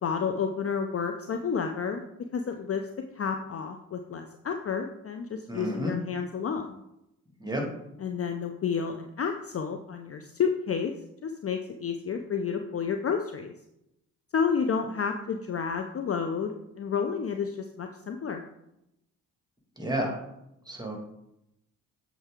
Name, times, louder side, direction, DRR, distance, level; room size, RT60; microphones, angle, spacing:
voice 1, 0.0-2.0 2.3-2.8 3.2-6.8 8.0-10.9 11.2-13.5 14.3-18.4, left 6 dB, 30° left, 6 dB, 0.6 m, -30 dB
voice 2, 5.5-6.0 7.4-7.6 19.8-20.2 20.7-21.0, equal, 10° right, 1 dB, 2.0 m, -30 dB
7.9 x 4.6 x 3.6 m, 0.84 s
hypercardioid pair, 45°, 44 cm